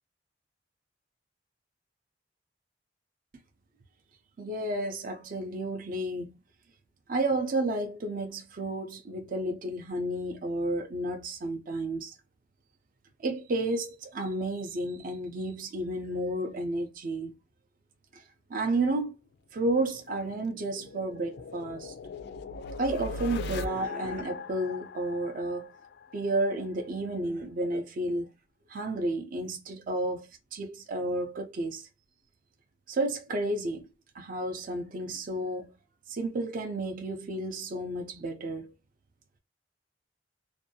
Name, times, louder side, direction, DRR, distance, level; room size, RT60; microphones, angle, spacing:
voice 1, 4.4-6.3 7.1-12.2 13.2-17.3 18.1-18.2 18.5-19.1 19.5-21.9 22.8-25.7 26.1-28.3 28.7-31.9 32.9-33.9 34.1-35.7 36.1-38.7, right 2 dB, 50° right, 0.4 m, -31 dB
sound 1, 19.7-26.5, left 3 dB, 60° left, 0.3 m, -40 dB
2.6 x 2.2 x 2.7 m
head